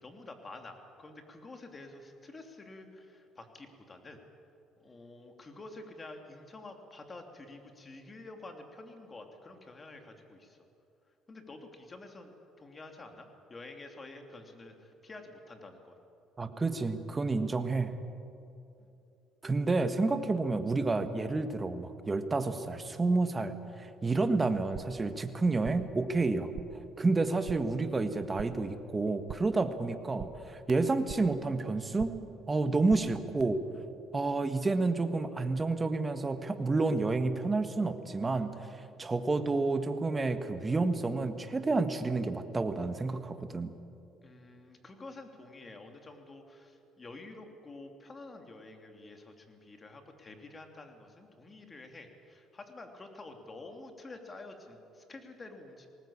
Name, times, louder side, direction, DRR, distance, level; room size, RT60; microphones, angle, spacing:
voice 1, 0.0-4.2 4.8-10.6 11.3-16.0 18.8-18.9 34.2-34.3 44.2-55.9, left 2 dB, 25° left, 5 dB, 2.8 m, -49 dB
voice 2, 16.4-17.9 19.4-23.5 23.8-26.5 27.0-32.2 32.5-33.6 34.1-38.7 39.0-43.7, right 3 dB, 20° right, 9 dB, 1.5 m, -30 dB
sound 1, 24.5-25.1 25.4-26.0 26.3-26.9 27.2-27.8 28.1-28.7 29.0-29.6 29.9-31.4 31.7-32.3 32.6-33.4, right 9 dB, 60° right, 1.0 m, -46 dB
20.0 x 18.5 x 8.7 m, 2.8 s
cardioid pair, 105°, 0 cm